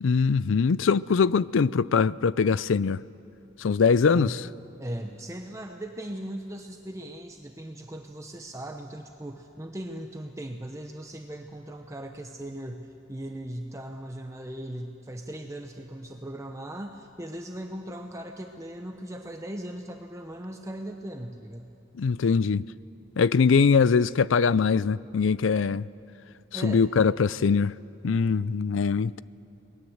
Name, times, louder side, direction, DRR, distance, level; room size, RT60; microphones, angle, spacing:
voice 1, 0.0-3.0 3.6-4.3 22.0-22.7 23.2-25.9 26.5-27.7 28.0-29.2, left 5 dB, 80° left, 0.5 m, -22 dB
voice 2, 4.8-21.7 26.5-26.9, right 1 dB, 15° right, 0.9 m, -38 dB
28.5 x 20.0 x 7.9 m
head